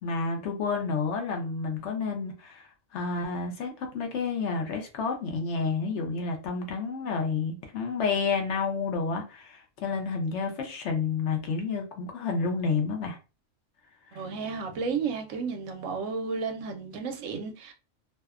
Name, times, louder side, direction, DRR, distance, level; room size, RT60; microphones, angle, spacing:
voice 1, 0.0-13.2 14.1-14.2, left 4 dB, 65° left, 0.8 m, -30 dB
voice 2, 14.1-17.7, right 5 dB, 70° right, 0.9 m, -32 dB
2.6 x 2.1 x 2.3 m
omnidirectional pair, 1.4 m